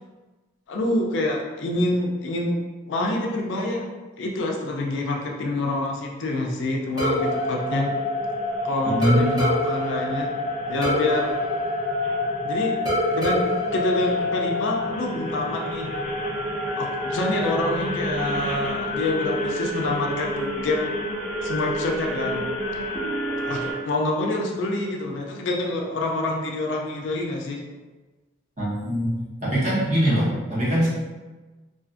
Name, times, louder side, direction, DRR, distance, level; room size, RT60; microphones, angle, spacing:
voice 1, 0.7-2.6 2.9-3.9 4.2-7.9 8.6-10.3 10.7-11.4 12.4-12.8 13.1-15.9 16.8-20.9 21.4-22.4 23.4-27.6, left 2 dB, 70° left, 0 dB, 0.4 m, -27 dB
sound 1, 7.0-8.6 9.0-12.4 12.9-14.8, equal, 20° right, 0.6 m, -28 dB
sound 2, 7.2-23.7, left 1 dB, 25° left, 0.7 m, -28 dB
voice 2, 8.8-9.3 28.6-29.1 29.4-30.9, equal, 35° right, -9 dB, 1.0 m, -22 dB
2.4 x 2.4 x 2.4 m, 1.2 s
head